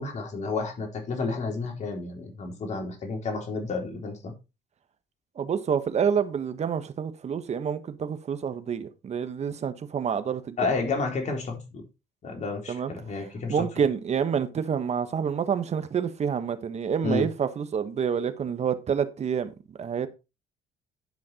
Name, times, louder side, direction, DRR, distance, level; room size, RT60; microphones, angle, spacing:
voice 1, 0.0-4.3 10.6-11.8 12.2-13.7 17.0-17.3, left 3 dB, 45° left, 3.8 m, -31 dB
voice 2, 5.4-10.7 12.7-12.9 13.5-20.1, right 7 dB, 40° right, 1.4 m, -28 dB
11.0 x 5.8 x 4.3 m
cardioid pair, 110°, 17 cm